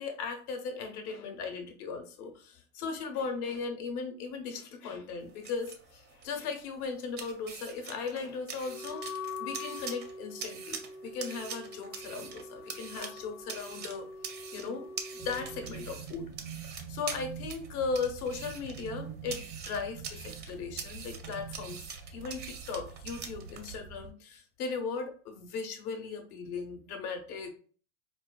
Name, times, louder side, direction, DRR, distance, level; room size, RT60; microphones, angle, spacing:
voice 1, 0.0-14.1 14.5-14.9 15.1-21.8 22.1-27.5, left 5 dB, 65° left, 5 dB, 1.0 m, -37 dB
sound 1, 5.2-23.7, right 6 dB, 25° right, 0.4 m, -45 dB
Wind instrument woodwind instrument, 8.6-15.7, left 3 dB, 40° left, 0.9 m, -44 dB
sound 2, 15.2-24.1, right 7 dB, 85° right, 0.7 m, -45 dB
4.4 x 2.3 x 2.3 m, 0.41 s
hypercardioid pair, 110°, 48 cm